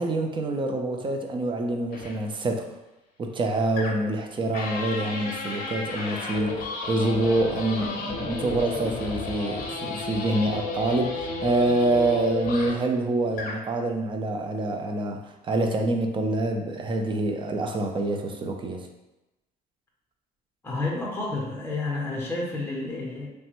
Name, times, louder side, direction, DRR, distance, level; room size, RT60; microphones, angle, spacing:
voice 1, 0.0-2.7 3.2-18.9, right 2 dB, 30° right, 3 dB, 0.4 m, -26 dB
sound 1, 1.9-2.1 3.8-4.2 4.5-12.9 13.3-13.6, left 3 dB, 60° left, 0.6 m, -33 dB
voice 2, 20.6-23.3, left 2 dB, 15° left, -3 dB, 0.6 m, -30 dB
3.1 x 2.1 x 2.9 m, 0.98 s
cardioid pair, 110°, 17 cm